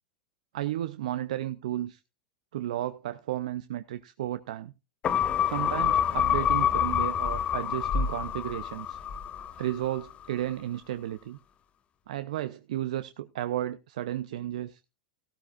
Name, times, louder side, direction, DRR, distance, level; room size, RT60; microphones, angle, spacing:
voice 1, 0.5-2.0 2.5-4.7 5.5-9.0 9.4-11.4 12.1-14.8, right 13 dB, 70° right, 0.5 m, -33 dB
sound 1, 5.0-9.7 10.1-10.2, left 9 dB, 30° left, 1.1 m, -27 dB
14.5 x 13.0 x 2.4 m
hypercardioid pair, 100°, 4 cm